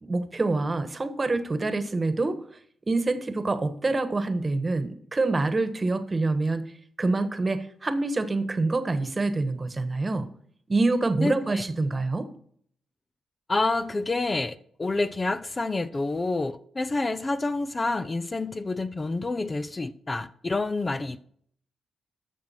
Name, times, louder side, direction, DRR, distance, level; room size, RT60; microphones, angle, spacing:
voice 1, 0.0-2.4 2.9-6.6 7.0-10.3 10.7-12.3, right 3 dB, 30° right, 1.3 m, -26 dB
voice 2, 11.2-11.6 13.5-21.3, left 2 dB, 30° left, 0.6 m, -28 dB
13.0 x 6.4 x 4.4 m
supercardioid pair, 55°, 0 cm